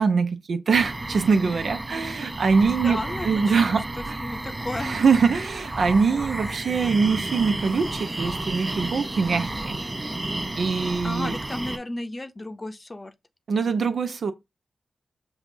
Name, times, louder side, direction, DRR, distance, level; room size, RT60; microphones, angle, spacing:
voice 1, 0.0-3.0 3.2-4.2 4.8-9.8 10.6-11.3 13.5-14.3, right 5 dB, 80° right, 0.6 m, -23 dB
sound 1, 0.7-11.8, right 2 dB, 30° right, 0.6 m, -32 dB
voice 2, 2.8-3.8 4.2-5.0 11.0-13.1, left 2 dB, 35° left, 0.6 m, -33 dB
5.7 x 2.4 x 2.6 m
cardioid pair, 50°, 0 cm